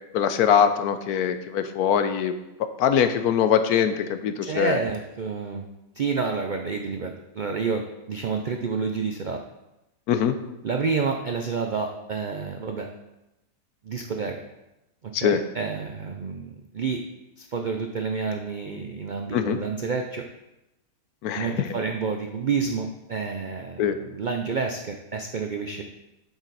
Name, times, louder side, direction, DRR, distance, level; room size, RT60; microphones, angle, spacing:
voice 1, 0.1-2.3 2.6-4.8 10.1-10.3 15.1-15.4 19.3-19.6 21.2-21.6 23.8-24.0, left 8 dB, 80° left, 9 dB, 1.2 m, -22 dB
voice 2, 4.4-5.6 5.9-9.4 10.6-12.9 13.8-14.4 15.0-17.0 17.4-20.2 21.3-25.8, right 5 dB, 75° right, 3 dB, 0.4 m, -29 dB
7.9 x 7.1 x 4.1 m, 0.95 s
omnidirectional pair, 1.6 m